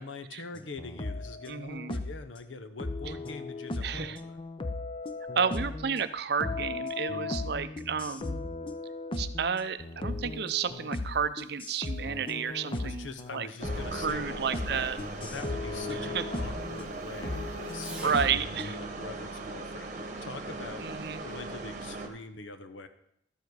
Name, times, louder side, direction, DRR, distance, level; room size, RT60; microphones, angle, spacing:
voice 1, 0.0-4.4 12.7-14.9 15.2-20.9 21.2-22.9, left 3 dB, 85° left, 10 dB, 0.9 m, -44 dB
sound 1, 0.5-2.3 2.8-6.0 6.4-16.9 17.2-18.9, left 2 dB, 25° left, 0.5 m, -37 dB
voice 2, 1.5-2.0 3.8-4.2 5.4-8.4 9.2-13.5 13.9-15.0 15.9-16.2 18.0-18.7 20.8-21.2, right 6 dB, 55° right, 13 dB, 0.5 m, -31 dB
Fireworks, 9.7-18.4 19.9-20.0 20.5-21.4, right 2 dB, 5° right, 1.0 m, -56 dB
sound 2, 13.6-22.1, right 2 dB, 40° right, 1.1 m, -39 dB
12.5 x 7.1 x 4.7 m, 0.72 s
head